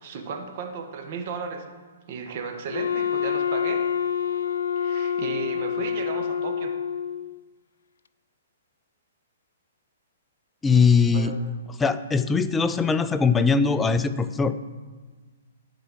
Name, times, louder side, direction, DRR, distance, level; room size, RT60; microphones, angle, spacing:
voice 1, 0.0-1.6 2.1-3.8 4.8-6.7 11.1-11.4, right 5 dB, 45° right, 3 dB, 1.5 m, -34 dB
Wind instrument woodwind instrument, 2.7-7.4, left 8 dB, 85° left, 0.3 m, -27 dB
voice 2, 10.6-11.3 11.8-14.6, left 5 dB, 10° left, 11 dB, 0.4 m, -21 dB
11.5 x 4.5 x 7.4 m, 1.4 s
hypercardioid pair, 150°, 0 cm